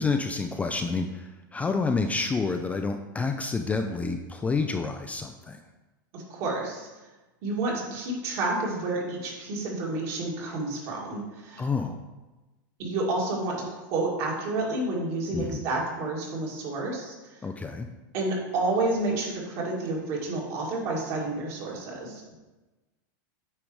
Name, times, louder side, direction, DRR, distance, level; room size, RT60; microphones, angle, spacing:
voice 1, 0.0-5.6 11.6-12.0 15.3-15.6 17.4-17.9, left 4 dB, 10° left, 5 dB, 0.3 m, -29 dB
voice 2, 6.1-6.9 7.4-11.6 12.8-17.1 18.1-22.2, right 2 dB, 55° right, -3 dB, 2.2 m, -30 dB
8.7 x 5.0 x 3.1 m, 1.1 s
supercardioid pair, 135°, 11 cm